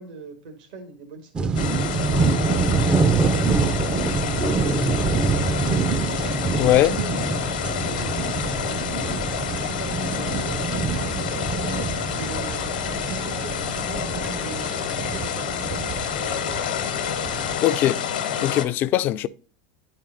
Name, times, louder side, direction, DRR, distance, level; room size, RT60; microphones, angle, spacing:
voice 1, 0.0-1.7 2.2-5.9 6.8-9.1 9.4-12.7 13.0-16.6, right 4 dB, 75° right, 1.6 m, -40 dB
sound 1, 1.3-17.6, right 4 dB, 20° right, 0.4 m, -26 dB
sound 2, 1.5-18.6, left 8 dB, 85° left, 1.0 m, -29 dB
voice 2, 6.6-6.9 17.6-18.0 18.4-19.3, left 13 dB, 45° left, 0.4 m, -20 dB
9.7 x 4.3 x 3.8 m
supercardioid pair, 110°, 5 cm